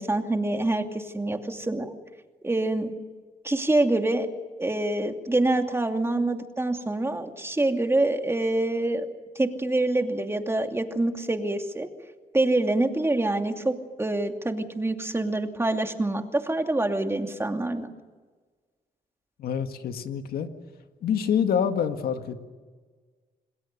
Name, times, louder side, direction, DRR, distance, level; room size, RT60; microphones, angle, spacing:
voice 1, 0.0-1.9 2.4-2.9 3.4-4.3 4.6-9.1 9.3-11.9 12.3-17.9, right 2 dB, 15° right, 5 dB, 2.7 m, -26 dB
voice 2, 19.4-20.5 21.0-22.5, left 8 dB, 85° left, 7 dB, 2.0 m, -26 dB
27.5 x 20.0 x 6.8 m, 1.4 s
cardioid pair, 80°, 15 cm